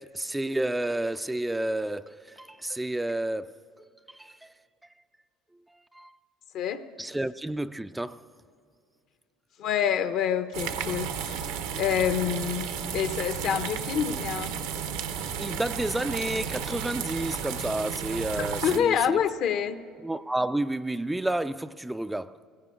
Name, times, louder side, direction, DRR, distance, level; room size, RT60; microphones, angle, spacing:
voice 1, 0.0-3.5 3.8-4.5 5.9-6.1 7.0-8.3 15.4-19.2 20.0-22.4, right 1 dB, 10° right, 0.3 m, -30 dB
voice 2, 9.6-11.5 11.8-12.7 12.9-14.5 18.4-19.8, left 8 dB, 60° left, 0.8 m, -27 dB
sound 1, 10.5-18.8, right 7 dB, 85° right, 1.0 m, -33 dB
18.0 x 16.0 x 3.8 m
supercardioid pair, 90°, 0 cm